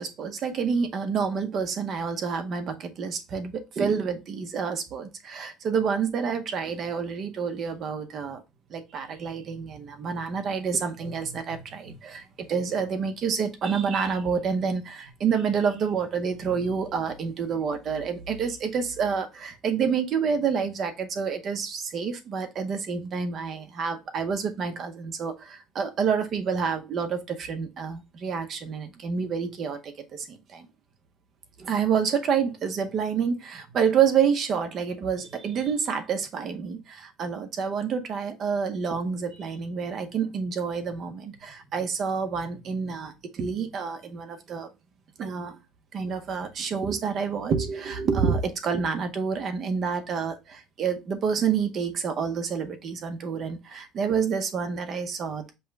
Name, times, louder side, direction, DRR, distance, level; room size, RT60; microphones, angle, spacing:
voice 1, 0.0-8.4 8.7-30.7 31.6-44.7 45.2-45.6 45.9-55.5, right 6 dB, 40° right, 0.7 m, -28 dB
5.4 x 2.1 x 4.4 m
cardioid pair, 150°, 0 cm